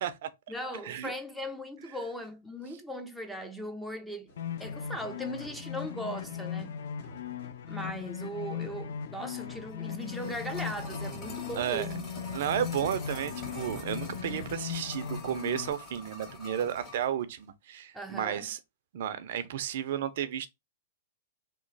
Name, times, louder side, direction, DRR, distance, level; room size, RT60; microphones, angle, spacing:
voice 1, 0.5-4.3 4.6-6.8 7.6-12.0 17.9-18.5, equal, ahead, 0.6 m, -39 dB
sound 1, 4.3-11.8, left 2 dB, 55° left, 1.6 m, -53 dB
sound 2, 4.4-15.7, left 8 dB, 80° left, 0.3 m, -38 dB
sound 3, 9.7-17.1 17.4-17.5, left 2 dB, 25° left, 1.6 m, -44 dB
voice 2, 11.5-11.9 12.3-18.6 18.9-20.5, right 10 dB, 65° right, 0.5 m, -33 dB
3.0 x 2.0 x 4.0 m
hypercardioid pair, 140°, 0 cm